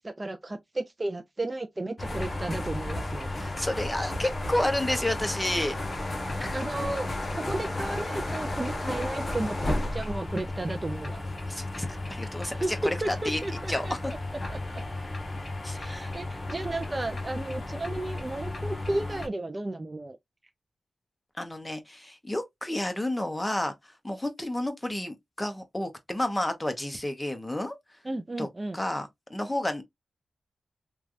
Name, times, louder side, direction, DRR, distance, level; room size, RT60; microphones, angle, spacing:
voice 1, 0.0-3.5 6.5-7.1 7.3-11.2 12.6-12.7 13.0-13.9 14.5-14.6 15.7-20.2 28.0-28.8, right 2 dB, 30° right, 0.4 m, -34 dB
sound 1, 2.0-19.3, left 2 dB, 45° left, 0.9 m, -33 dB
voice 2, 3.3-5.8 6.4-6.6 11.5-13.4 13.7-14.1 15.6-16.1 21.4-23.7 24.0-27.8 28.4-28.5 28.7-29.8, left 1 dB, 15° left, 0.8 m, -31 dB
3.2 x 2.3 x 2.5 m
cardioid pair, 70°, 0 cm